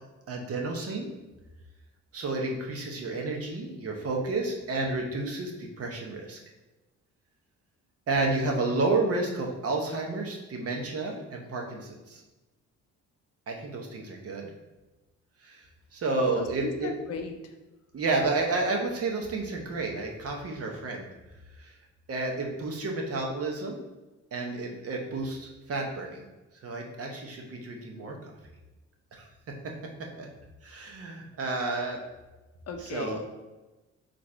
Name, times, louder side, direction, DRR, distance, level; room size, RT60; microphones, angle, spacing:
voice 1, 0.3-1.1 2.1-6.4 8.1-12.2 13.5-14.5 15.4-15.6 15.9-16.9 17.9-21.1 21.6-21.7 22.1-23.8 24.3-26.2 26.6-28.3 29.1-29.3 30.2-30.3 30.6-32.0 32.8-33.2, right 3 dB, 50° right, 1 dB, 0.9 m, -31 dB
voice 2, 16.3-17.5 32.7-33.2, left 5 dB, 55° left, 5 dB, 0.6 m, -36 dB
3.9 x 2.6 x 4.5 m, 1.1 s
cardioid pair, 90°, 30 cm